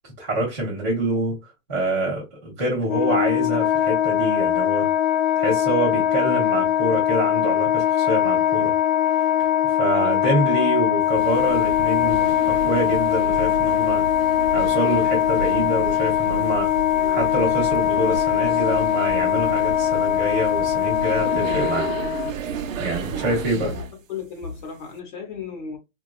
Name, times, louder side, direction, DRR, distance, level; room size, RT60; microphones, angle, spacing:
voice 1, 0.2-4.9 5.4-8.7 9.8-14.1 14.5-16.7 17.1-21.9 22.8-23.7, right 1 dB, 15° right, 0.3 m, -26 dB
Wind instrument woodwind instrument, 2.8-22.3, left 11 dB, 70° left, 0.6 m, -21 dB
voice 2, 9.9-10.6 23.6-23.8 24.1-25.8, left 6 dB, 35° left, 0.8 m, -35 dB
sound 1, 11.0-24.0, right 6 dB, 75° right, 0.6 m, -33 dB
2.8 x 2.3 x 2.2 m
hypercardioid pair, 160°, 40 cm